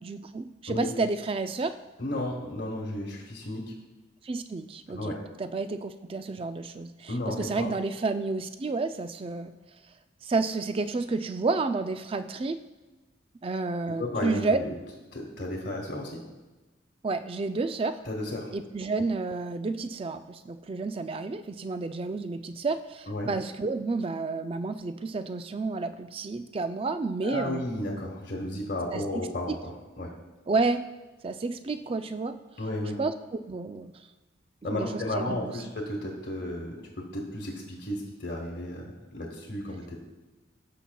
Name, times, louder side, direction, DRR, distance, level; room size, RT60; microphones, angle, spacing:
voice 1, 0.0-1.7 4.2-5.1 5.4-9.5 10.2-12.6 13.4-14.6 17.0-18.0 18.5-27.6 28.9-29.2 29.5-29.6 30.5-30.8 31.2-32.4 33.0-33.1 33.5-33.9 34.7-35.5, right 3 dB, 25° right, 10 dB, 0.3 m, -30 dB
voice 2, 2.0-3.7 4.9-5.2 7.1-7.7 14.0-14.8 15.1-16.2 18.0-18.5 23.1-23.3 27.2-30.1 32.6-33.0 34.6-40.0, left 1 dB, 50° left, -2 dB, 1.1 m, -33 dB
15.5 x 5.8 x 2.3 m, 1.2 s
head